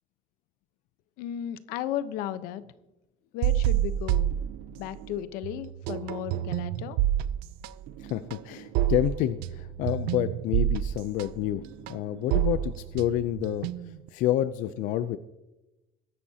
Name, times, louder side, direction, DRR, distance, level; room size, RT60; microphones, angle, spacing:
voice 1, 1.2-2.6 3.3-4.3 4.8-7.0, left 11 dB, 80° left, 13 dB, 0.9 m, -34 dB
sound 1, 3.4-5.1 5.4-14.1, right 12 dB, 85° right, 0.6 m, -28 dB
voice 2, 8.0-15.2, left 12 dB, 65° left, 12 dB, 0.5 m, -29 dB
22.0 x 11.0 x 2.8 m, 1.0 s
cardioid pair, 175°, 15 cm